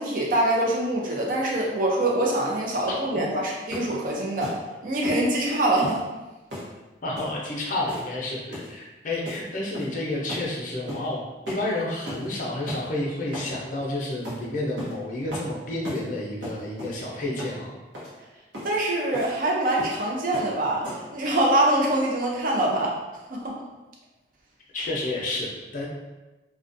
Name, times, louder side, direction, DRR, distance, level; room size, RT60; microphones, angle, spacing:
voice 1, 0.0-4.6 4.8-6.0 18.6-23.0 23.3-23.6, right 1 dB, 45° right, -3 dB, 0.5 m, -24 dB
voice 2, 3.1-3.4 7.0-17.7 24.7-25.8, left 1 dB, 45° left, -3 dB, 0.5 m, -30 dB
sound 1, 3.7-4.0 4.4-4.6 5.0-5.3 5.8-6.0 6.5-6.7 7.2-7.3 7.9-8.2 8.5-8.7 9.2-9.4 9.7-10.0 10.3-10.5 10.9-11.1 11.5-11.7 12.1-12.3 12.7-12.8 13.3-13.5 14.2-14.4 14.8-15.0 15.3-15.5 15.8-16.1 16.4-17.0 17.4-17.6 17.9-18.1 18.5-18.7 19.1-19.4 19.8-20.0 20.3-20.5 20.8-21.1, equal, 80° right, 0.8 m, -36 dB
2.4 x 2.1 x 2.5 m, 1.1 s
head